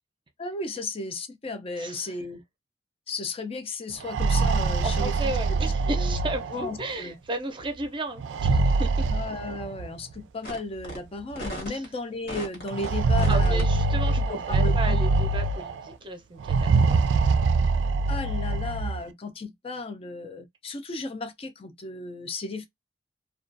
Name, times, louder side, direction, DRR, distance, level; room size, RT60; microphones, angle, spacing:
voice 1, 0.4-2.4 3.1-6.2 6.5-7.2 9.1-13.7 14.2-15.0 18.1-22.7, left 2 dB, 35° left, 0.4 m, -35 dB
voice 2, 1.7-2.2 4.8-9.1 11.7-11.8 13.3-17.4, right 2 dB, 30° right, 0.6 m, -34 dB
sound 1, 3.9-6.8 8.2-9.9 10.9-11.0 11.3-11.4 12.7-15.8 16.4-19.0, right 3 dB, 90° right, 0.3 m, -24 dB
sound 2, 10.4-10.6 10.8-11.0 11.4-11.9 12.3-12.9 13.2-13.6, equal, 55° left, 1.2 m, -35 dB
2.3 x 2.3 x 2.5 m
head